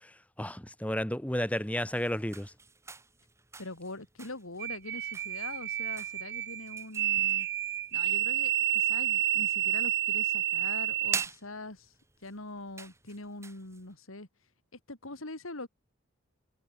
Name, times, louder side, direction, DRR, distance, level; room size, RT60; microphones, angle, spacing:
voice 1, 0.4-2.5, equal, 5° left, 2.1 m, -32 dB
sound 1, 1.4-13.9, right 4 dB, 15° right, 5.5 m, -46 dB
voice 2, 3.6-7.5 7.9-11.9 12.2-14.3 14.9-15.7, left 2 dB, 85° left, 3.5 m, -43 dB
sound 2, 4.6-11.3, right 12 dB, 55° right, 3.1 m, -30 dB
head